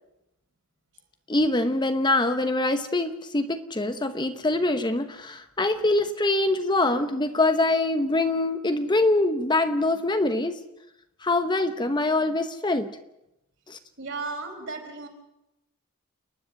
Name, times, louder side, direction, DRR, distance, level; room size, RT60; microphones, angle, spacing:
voice 1, 1.3-10.6 11.2-12.9 13.7-13.8, left 2 dB, 20° left, 9 dB, 0.9 m, -24 dB
voice 2, 14.0-15.1, right 3 dB, 55° right, 2 dB, 4.6 m, -34 dB
30.0 x 10.5 x 9.2 m, 0.88 s
head